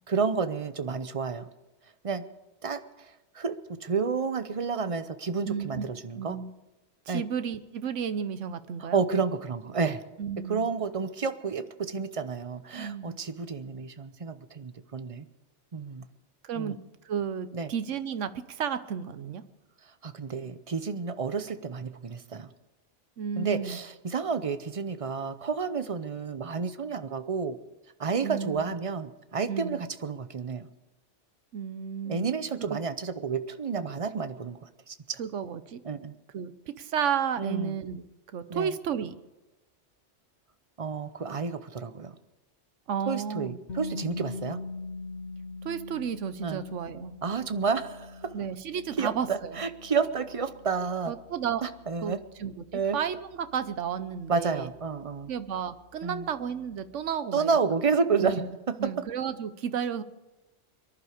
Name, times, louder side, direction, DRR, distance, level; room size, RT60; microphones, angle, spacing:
voice 1, 0.1-1.4 2.0-2.2 2.6-2.8 3.3-6.4 7.1-7.2 8.8-10.0 10.5-15.2 15.7-16.1 16.5-16.8 17.5-17.7 20.0-22.5 23.4-27.6 28.0-30.7 32.1-35.2 35.8-36.1 37.4-37.8 38.5-38.7 40.8-42.2 43.1-44.6 46.4-46.6 47.2-48.3 49.0-51.1 51.6-52.2 52.7-53.0 54.3-55.3 56.0-56.3 57.3-58.4 58.7-58.9, right 5 dB, 35° right, 11 dB, 0.7 m, -30 dB
voice 2, 5.4-6.5 7.1-9.0 10.2-10.7 12.8-13.2 16.4-16.8 17.0-19.4 23.2-23.8 28.2-28.7 29.4-29.8 31.5-32.3 32.7-32.8 35.2-35.8 36.3-38.0 38.3-39.2 42.9-43.6 45.6-47.2 48.3-49.6 51.1-51.6 52.0-54.7 55.3-57.6 58.2-58.5 58.8-60.0, right 7 dB, 90° right, 12 dB, 1.2 m, -33 dB
sound 1, 43.7-55.5, left 3 dB, 70° left, 1.4 m, -43 dB
23.5 x 11.5 x 5.0 m, 1.0 s
omnidirectional pair, 1.2 m